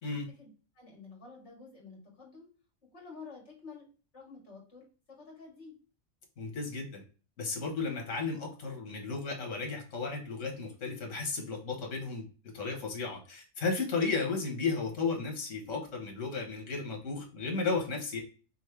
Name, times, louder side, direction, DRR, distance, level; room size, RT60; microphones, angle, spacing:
voice 1, 0.4-2.5 2.9-3.9 4.1-5.8, left 4 dB, 65° left, -2 dB, 2.1 m, -50 dB
voice 2, 6.4-7.0 7.4-12.3 12.5-18.2, left 4 dB, 80° left, 1 dB, 1.6 m, -34 dB
5.6 x 2.6 x 3.2 m, 0.37 s
omnidirectional pair, 1.3 m